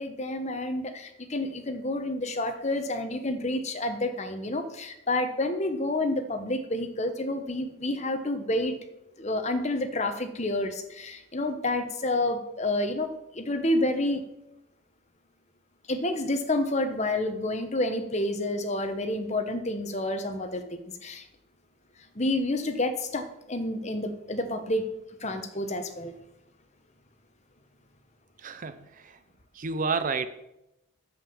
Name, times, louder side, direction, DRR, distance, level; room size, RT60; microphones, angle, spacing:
voice 1, 0.0-8.7 9.2-14.2 15.9-21.3 22.1-24.9 25.2-26.1, left 1 dB, 30° left, 1.1 m, -29 dB
voice 2, 28.4-29.2 29.5-30.3, right 4 dB, 40° right, 0.5 m, -30 dB
8.4 x 7.8 x 7.1 m
head